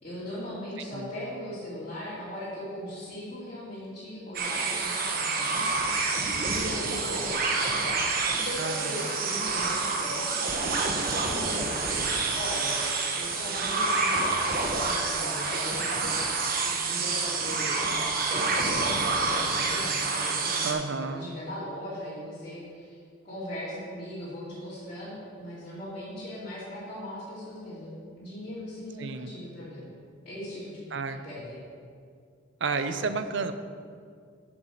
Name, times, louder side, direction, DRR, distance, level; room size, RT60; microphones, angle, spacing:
voice 1, 0.0-6.1 6.3-7.5 7.8-23.0 23.2-30.0 30.2-30.8 31.2-31.6 32.9-33.1, left 1 dB, 35° left, -12 dB, 2.8 m, -39 dB
voice 2, 0.8-1.1 8.6-8.9 20.6-21.3 29.0-29.3 30.9-31.2 32.6-33.5, right 4 dB, 60° right, 10 dB, 0.6 m, -31 dB
sound 1, 4.3-20.7, right 3 dB, 45° right, 1.1 m, -28 dB
8.8 x 7.1 x 6.6 m, 2.1 s
head